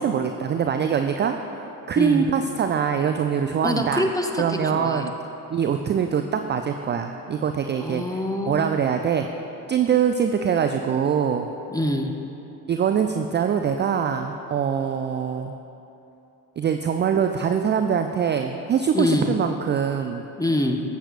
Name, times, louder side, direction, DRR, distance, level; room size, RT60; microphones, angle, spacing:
voice 1, 0.0-1.4 1.9-4.1 4.4-5.1 5.5-8.0 8.5-9.3 9.7-11.5 12.7-15.5 16.6-20.2, right 7 dB, 25° right, 6 dB, 0.3 m, -23 dB
voice 2, 3.6-5.1 7.8-8.5 11.7-12.1 18.9-19.3 20.4-20.8, left 1 dB, 5° left, 3 dB, 0.8 m, -25 dB
14.5 x 8.3 x 2.5 m, 2.9 s
hypercardioid pair, 45°, 49 cm